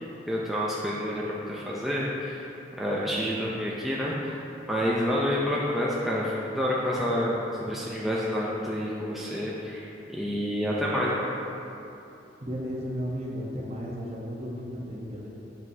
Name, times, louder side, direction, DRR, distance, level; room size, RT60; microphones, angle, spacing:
voice 1, 0.3-2.5 2.8-4.4 4.7-11.3, equal, ahead, -6 dB, 0.5 m, -28 dB
voice 2, 12.4-15.3, equal, 35° right, -3 dB, 0.9 m, -34 dB
7.4 x 5.9 x 2.7 m, 2.8 s
head